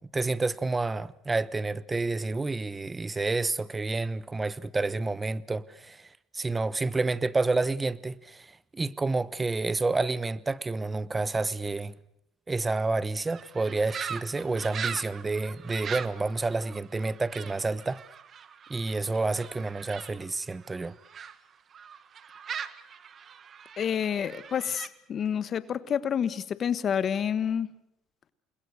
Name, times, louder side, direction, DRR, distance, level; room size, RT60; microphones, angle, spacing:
voice 1, 0.1-11.9 12.5-18.0 18.7-20.9, right 3 dB, 20° right, 1.1 m, -29 dB
sound 1, 13.3-21.4 21.7-24.9, right 7 dB, 40° right, 1.6 m, -41 dB
voice 2, 23.8-27.7, left 8 dB, 45° left, 1.2 m, -29 dB
29.0 x 21.5 x 6.7 m
supercardioid pair, 85°, 0 cm